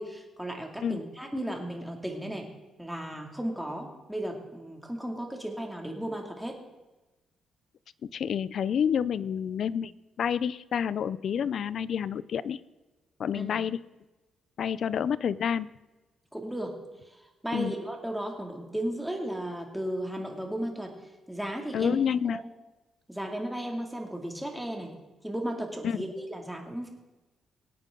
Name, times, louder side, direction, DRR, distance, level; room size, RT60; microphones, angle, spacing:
voice 1, 0.0-2.5 2.8-6.6 13.3-13.7 16.3-16.8 17.0-20.9 21.3-22.0 22.2-22.5 23.1-24.9 25.2-26.9, right 1 dB, 5° right, 1 dB, 2.6 m, -35 dB
voice 2, 8.1-9.9 10.2-12.6 13.2-13.8 14.6-15.7 17.5-17.7 21.7-22.4 25.8-26.0, left 8 dB, 60° left, 18 dB, 0.5 m, -28 dB
23.5 x 9.0 x 3.9 m, 1.1 s
cardioid pair, 105°, 0 cm